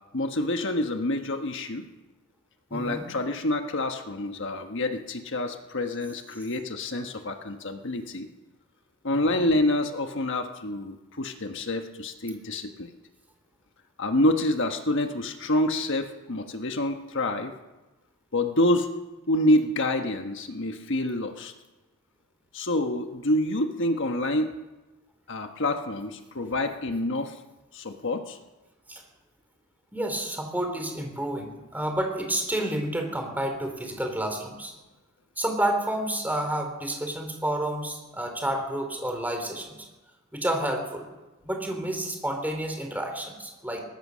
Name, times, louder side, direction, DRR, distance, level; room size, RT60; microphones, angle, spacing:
voice 1, 0.1-1.8 2.7-8.3 9.0-12.9 14.0-17.5 18.3-18.9 19.3-21.5 22.5-24.5 25.3-27.4 27.7-28.4, left 1 dB, 55° left, 5 dB, 1.4 m, -27 dB
voice 2, 2.7-3.1 9.2-9.4 28.9-29.0 29.9-34.7 35.4-39.8 40.3-41.1 41.4-43.8, right 1 dB, 10° right, 4 dB, 3.3 m, -30 dB
22.5 x 19.0 x 6.4 m, 1.1 s
head